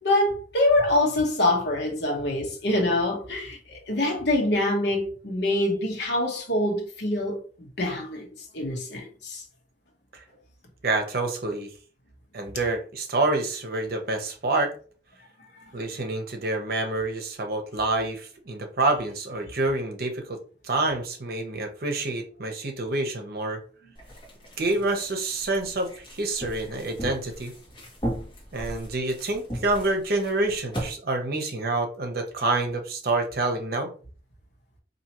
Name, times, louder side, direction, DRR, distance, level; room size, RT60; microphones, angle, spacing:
voice 1, 0.0-8.3 8.5-9.4, left 1 dB, 65° left, 1.1 m, -25 dB
voice 2, 10.8-11.7 12.3-14.7 15.7-20.4 20.6-23.6 24.6-27.5 28.5-33.9, right 2 dB, 55° right, 0.8 m, -27 dB
sound 1, 23.9-30.9, equal, 25° left, 1.5 m, -37 dB
4.2 x 2.7 x 2.9 m
head